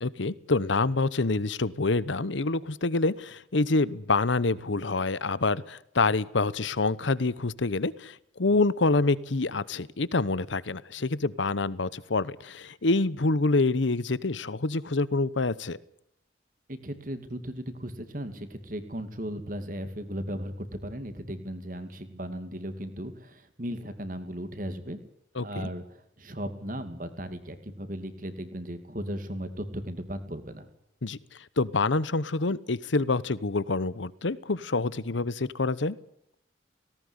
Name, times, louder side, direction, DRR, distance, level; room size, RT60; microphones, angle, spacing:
voice 1, 0.0-15.8 25.4-25.7 31.0-31.2 31.6-36.0, left 3 dB, 85° left, 19 dB, 1.0 m, -27 dB
voice 2, 16.7-25.0 25.4-30.7, equal, 45° right, 9 dB, 2.5 m, -36 dB
18.0 x 18.0 x 9.8 m, 0.73 s
head